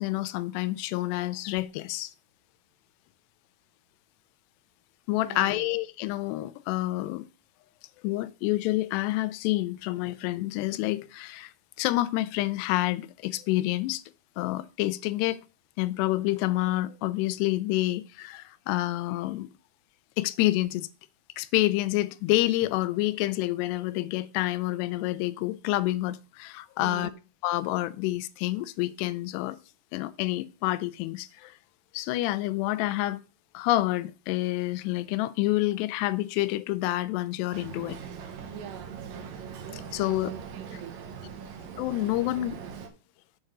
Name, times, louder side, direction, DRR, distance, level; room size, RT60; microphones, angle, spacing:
voice 1, 0.0-2.1 5.1-7.3 8.0-11.5 11.8-14.0 14.4-15.4 15.8-19.5 20.2-20.9 21.4-27.1 27.4-29.6 29.9-31.5 31.9-33.2 33.5-38.0 39.7-40.3 41.8-42.6, left 17 dB, 85° left, 2.7 m, -28 dB
voice 2, 5.2-5.7 26.8-27.2 38.5-39.0 40.0-41.0, right 9 dB, 90° right, 3.3 m, -42 dB
Boat Water vehicle, 37.5-42.9, right 7 dB, 65° right, 2.5 m, -41 dB
7.7 x 4.7 x 6.6 m
omnidirectional pair, 4.8 m